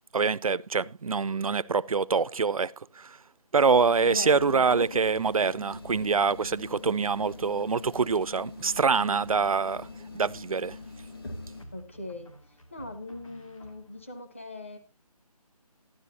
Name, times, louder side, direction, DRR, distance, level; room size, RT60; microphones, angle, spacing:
voice 1, 0.1-3.2 3.5-9.9 10.1-10.8, right 5 dB, 60° right, 0.4 m, -25 dB
sound 1, 3.7-11.6, left 3 dB, 35° left, 1.6 m, -44 dB
voice 2, 4.1-5.0 5.4-5.5 11.7-12.3 12.7-14.8, left 1 dB, 20° left, 0.8 m, -39 dB
sound 2, 11.6-14.3, equal, 55° left, 2.3 m, -53 dB
12.5 x 11.0 x 2.6 m
figure-of-eight pair, 175°, 20 cm